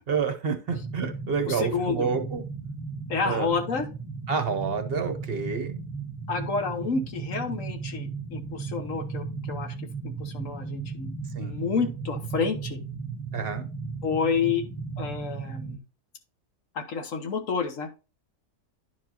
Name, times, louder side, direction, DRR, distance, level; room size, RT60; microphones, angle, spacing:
voice 1, 0.1-2.4 3.2-3.5 4.3-5.8 11.4-11.6 13.3-13.7, right 5 dB, 45° right, 8 dB, 1.0 m, -28 dB
sound 1, 0.7-15.8, right 4 dB, 20° right, 0.8 m, -36 dB
voice 2, 1.4-2.1 3.1-3.9 6.3-12.8 14.0-14.6 15.0-15.8 16.7-17.9, left 5 dB, 55° left, 6 dB, 1.3 m, -29 dB
10.5 x 4.6 x 2.8 m, 0.31 s
omnidirectional pair, 1.7 m